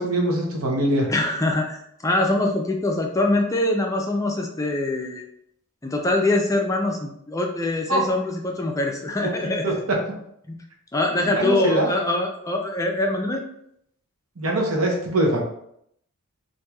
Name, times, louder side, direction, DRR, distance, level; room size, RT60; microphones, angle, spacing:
voice 1, 0.0-1.1 7.9-8.0 9.2-9.7 11.3-11.9 14.4-15.4, right 1 dB, 70° right, 0 dB, 0.8 m, -23 dB
voice 2, 1.1-5.2 5.8-9.8 10.5-10.6 10.9-13.5, left 2 dB, 15° left, 1 dB, 0.4 m, -23 dB
4.4 x 2.6 x 2.3 m, 0.73 s
head